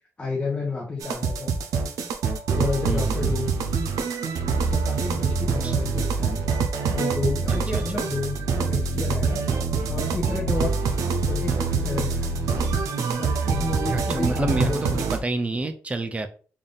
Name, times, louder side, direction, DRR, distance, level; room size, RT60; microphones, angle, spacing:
voice 1, 0.2-1.6 2.5-3.6 4.7-6.4 6.9-9.4 9.9-10.8 11.2-12.4 13.2-15.4, left 3 dB, 20° left, -3 dB, 0.8 m, -31 dB
sound 1, 1.0-15.2, right 4 dB, 90° right, 0.6 m, -25 dB
voice 2, 2.9-3.4 5.6-5.8 7.5-8.0 10.6-11.0 13.9-16.3, right 2 dB, 25° right, 8 dB, 0.4 m, -29 dB
3.5 x 2.4 x 3.8 m, 0.39 s
cardioid pair, 120°, 6 cm